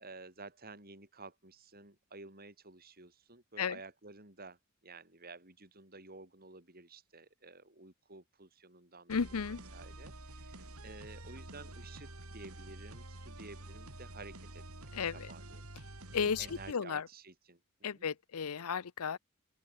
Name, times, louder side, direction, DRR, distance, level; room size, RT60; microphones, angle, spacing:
voice 1, 0.0-9.3 9.7-15.7 16.4-17.6 17.9-18.1, right 3 dB, 45° right, 7.4 m, -52 dB
voice 2, 9.1-9.6 14.9-15.3 16.1-17.0 17.8-19.2, left 6 dB, 85° left, 0.6 m, -34 dB
sound 1, 9.1-16.7, right 1 dB, 80° right, 5.3 m, -49 dB
open air
head